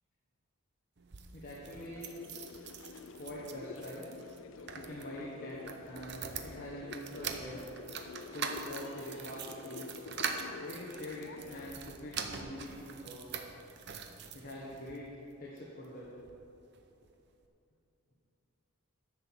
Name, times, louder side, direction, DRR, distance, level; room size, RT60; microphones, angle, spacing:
sound 1, 1.0-15.0 15.6-16.4 16.7-16.8 17.0-17.1, right 6 dB, 50° right, 0.7 m, -44 dB
voice 1, 1.3-2.1 3.2-4.1 4.7-7.7 8.3-10.1 10.6-13.4 14.3-15.1 15.4-16.1, left 1 dB, 40° left, -5 dB, 1.4 m, -44 dB
sound 2, 1.7-11.7, left 4 dB, 60° left, 0.4 m, -49 dB
10.5 x 6.1 x 7.3 m, 2.7 s
head